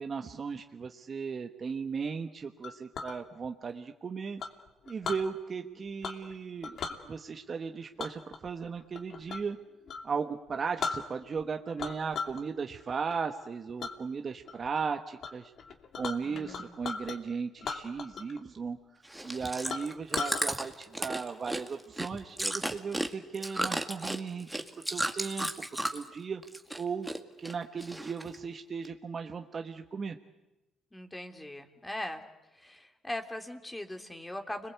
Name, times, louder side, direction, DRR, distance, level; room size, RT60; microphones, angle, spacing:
voice 1, 0.0-4.4 4.9-6.8 7.0-9.6 10.0-15.5 15.9-24.6 24.9-25.5 25.9-26.4 26.7-27.1 27.4-30.2, right 5 dB, 40° right, 5 dB, 1.3 m, -36 dB
Chink clink, 2.6-3.2 4.4-5.3 6.0-6.3 6.6-7.0 8.0-9.5 9.9-10.1 10.5-10.6 10.8-11.4 11.8-12.4 12.8-13.2 13.8-13.9 14.5-14.8 15.2-15.3 15.6-17.2 17.6-18.4 18.7-18.8 19.2-19.3 19.7-20.4, left 5 dB, 60° left, 2.8 m, -37 dB
voice 2, 16.2-16.8 30.9-32.2 32.5-34.7, left 1 dB, 10° left, 5 dB, 3.1 m, -40 dB
Chewing mastication, 19.1-26.1 26.4-27.2 27.4-28.4 28.8-28.9, right 1 dB, 5° right, 2.1 m, -34 dB
30.0 x 22.0 x 8.2 m, 0.98 s
supercardioid pair, 75°, 0 cm